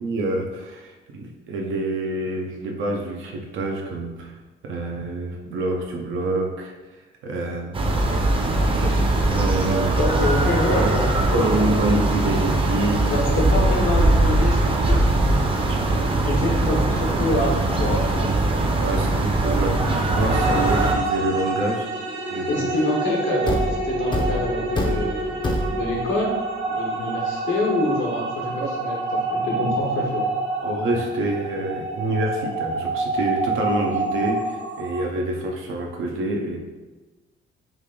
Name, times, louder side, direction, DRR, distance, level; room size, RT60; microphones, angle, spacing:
voice 1, 0.0-4.3 4.6-6.7 7.2-7.7 8.7-9.0 9.2-10.0 10.8-11.0 11.3-13.0 18.8-21.9 22.3-22.7 28.6-28.7 30.6-36.6, right 2 dB, 85° right, 1 dB, 0.7 m, -27 dB
sound 1, 7.7-20.9, right 2 dB, 25° right, 0.5 m, -21 dB
voice 2, 10.0-11.5 13.1-15.2 16.2-18.6 22.5-25.4 25.7-30.3, left 1 dB, 85° left, -1 dB, 1.0 m, -26 dB
sound 2, 20.3-35.0, right 2 dB, 65° right, 1.3 m, -27 dB
Thump thud, 23.5-26.1, left 1 dB, 25° left, 0.5 m, -26 dB
3.3 x 2.4 x 3.6 m, 1.2 s
cardioid pair, 90°, 20 cm